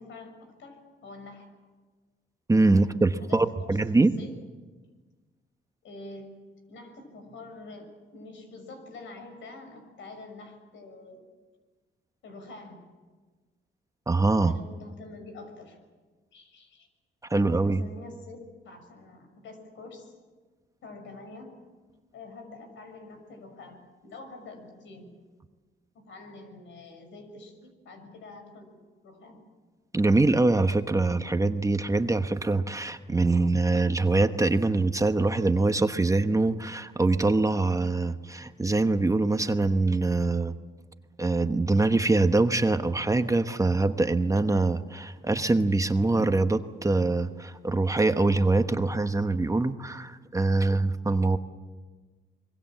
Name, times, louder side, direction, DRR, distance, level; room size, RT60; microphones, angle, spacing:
voice 1, 0.0-1.5 2.8-2.9 3.2-3.8 4.2-4.3 5.8-6.3 6.7-11.2 12.2-12.8 14.4-15.8 16.3-16.9 17.3-20.1 20.8-21.5 22.1-25.1 26.0-28.8 29.0-29.4, left 3 dB, 75° left, 6 dB, 6.4 m, -46 dB
voice 2, 2.5-4.1 14.1-14.5 17.3-17.8 29.9-40.5 41.2-51.4, right 3 dB, 15° right, 8 dB, 1.1 m, -24 dB
25.5 x 22.5 x 7.5 m, 1.4 s
cardioid pair, 90°, 20 cm